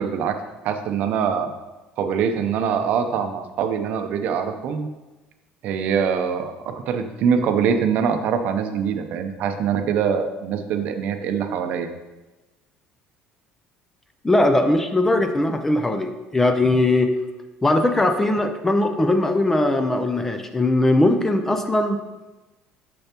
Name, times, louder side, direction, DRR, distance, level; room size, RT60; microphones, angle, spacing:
voice 1, 0.0-1.5 2.0-4.9 5.6-11.9, right 7 dB, 55° right, 7 dB, 0.6 m, -23 dB
voice 2, 14.2-17.1 17.6-22.0, left 2 dB, 10° left, 7 dB, 0.4 m, -20 dB
6.8 x 6.8 x 2.9 m, 1.1 s
cardioid pair, 150°, 3 cm